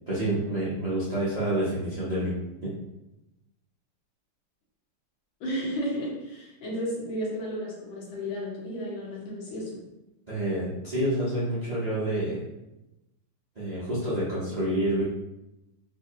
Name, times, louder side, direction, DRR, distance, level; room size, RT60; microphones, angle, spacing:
voice 1, 0.1-2.3 2.6-2.7 10.3-12.4 13.6-15.0, right 1 dB, 85° right, -10 dB, 0.3 m, -28 dB
voice 2, 5.4-9.8, equal, 75° left, -4 dB, 1.8 m, -33 dB
3.9 x 2.7 x 2.7 m, 0.95 s
omnidirectional pair, 2.2 m